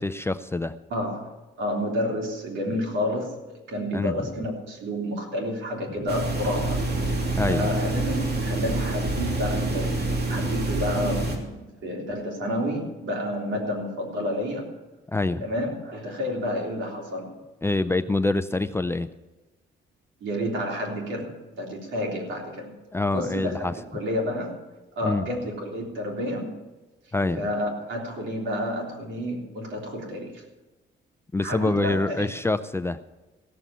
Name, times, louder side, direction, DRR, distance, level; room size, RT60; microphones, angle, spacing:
voice 1, 0.0-0.7 3.9-4.1 7.3-7.7 15.1-15.4 17.6-19.1 22.9-23.7 25.0-25.3 27.1-27.5 31.3-33.0, left 2 dB, 10° left, 10 dB, 0.5 m, -25 dB
voice 2, 0.9-6.8 7.5-14.8 15.4-17.4 20.2-22.7 23.1-24.6 25.0-26.5 27.4-30.4 31.4-32.3, equal, 70° right, 0 dB, 3.5 m, -30 dB
sound 1, 6.1-11.4, right 2 dB, 55° right, 2.7 m, -27 dB
16.0 x 7.2 x 7.0 m, 1.1 s
cardioid pair, 90°, 20 cm